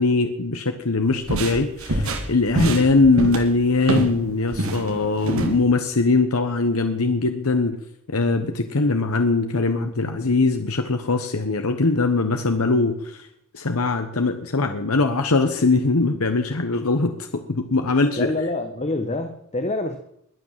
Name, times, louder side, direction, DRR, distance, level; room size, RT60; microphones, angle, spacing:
voice 1, 0.0-7.8 8.1-13.3 13.5-18.3, left 3 dB, 85° left, 7 dB, 1.2 m, -21 dB
sound 1, 1.1-4.2 4.5-5.6, right 1 dB, 70° right, 2.6 m, -25 dB
voice 2, 18.2-20.0, left 2 dB, 30° left, 7 dB, 1.3 m, -26 dB
21.5 x 9.0 x 7.4 m, 0.74 s
head